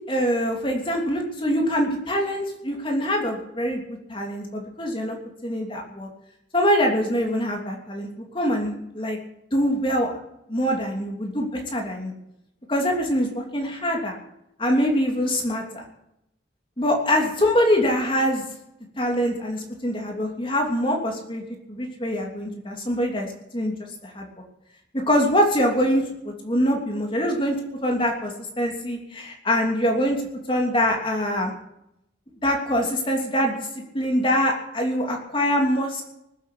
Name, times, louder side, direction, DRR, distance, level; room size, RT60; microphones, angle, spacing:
voice 1, 0.1-3.8 4.1-5.2 5.4-6.1 6.5-9.2 9.5-10.1 10.5-11.5 11.7-12.1 12.7-14.2 14.6-15.8 16.8-18.4 19.0-21.4 21.7-23.3 23.5-23.7 24.0-24.2 25.1-27.5 27.8-30.2 30.5-31.5 32.4-33.5 33.9-36.0, equal, 30° left, 1 dB, 3.0 m, -24 dB
19.5 x 8.4 x 8.5 m, 0.81 s
head